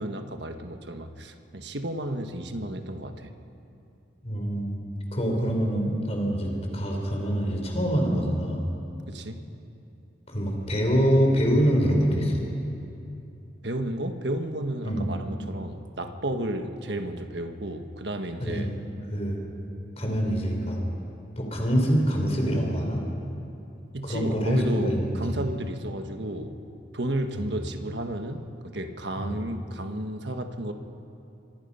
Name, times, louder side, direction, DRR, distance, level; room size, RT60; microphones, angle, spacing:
voice 1, 0.0-3.3 9.1-9.4 13.6-18.7 20.0-20.2 23.9-26.6 26.9-30.7, right 1 dB, 65° right, 6 dB, 1.4 m, -32 dB
voice 2, 4.2-4.8 5.1-8.6 10.3-12.4 14.8-15.1 18.4-18.8 19.1-19.4 20.0-20.8 21.4-23.0 24.0-25.4 27.3-27.4 29.2-29.4, equal, 35° left, 0 dB, 4.3 m, -25 dB
26.0 x 25.0 x 5.7 m, 2.7 s
head